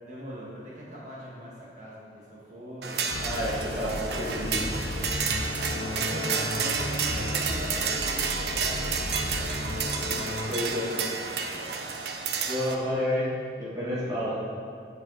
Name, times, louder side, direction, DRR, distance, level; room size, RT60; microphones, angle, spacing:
voice 1, 0.0-3.1 3.5-3.8 4.0-5.2 5.8-10.4 10.9-11.2 11.5-11.7 14.0-14.3, equal, 40° right, -6 dB, 1.9 m, -42 dB
sound 1, 2.8-12.7, right 5 dB, 65° right, 0.7 m, -31 dB
sound 2, 3.1-10.5, left 1 dB, 80° left, 0.7 m, -34 dB
voice 2, 3.2-4.6 10.5-10.9 12.5-13.3 13.6-14.3, left 1 dB, 20° right, -9 dB, 1.8 m, -29 dB
8.9 x 7.6 x 4.2 m, 2.3 s
head